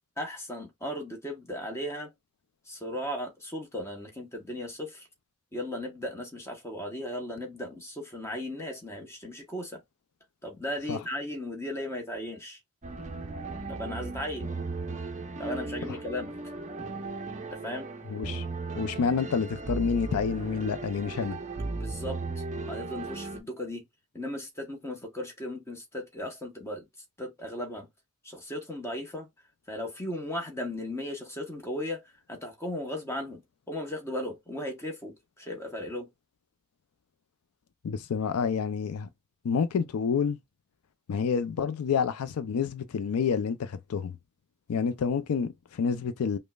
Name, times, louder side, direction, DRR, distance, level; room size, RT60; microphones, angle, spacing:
voice 1, 0.2-2.1 2.7-5.1 5.5-9.8 10.4-12.6 13.7-14.5 15.4-16.3 17.5-17.9 21.8-23.8 24.1-26.8 27.2-27.9 28.2-29.3 29.7-32.0 32.3-33.4 33.7-36.1, left 1 dB, 10° left, 0.9 m, -36 dB
sound 1, 12.8-23.4, right 3 dB, 35° right, 0.5 m, -36 dB
voice 2, 18.1-18.5 18.8-21.4 37.8-39.1 39.4-40.4 41.1-44.2 44.7-46.4, left 6 dB, 80° left, 0.4 m, -28 dB
5.0 x 2.1 x 2.2 m
head